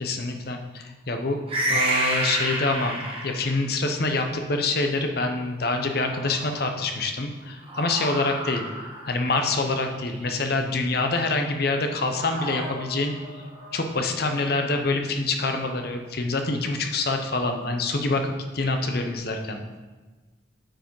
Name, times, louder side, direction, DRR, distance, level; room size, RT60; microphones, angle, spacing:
voice 1, 0.0-1.4 1.7-8.6 9.0-13.1 13.7-19.6, left 3 dB, 55° left, 5 dB, 0.8 m, -26 dB
sound 1, 1.5-3.6 5.8-6.8 7.6-10.7 12.2-13.9, right 1 dB, 30° right, 1.3 m, -30 dB
8.8 x 4.8 x 4.7 m, 1.3 s
head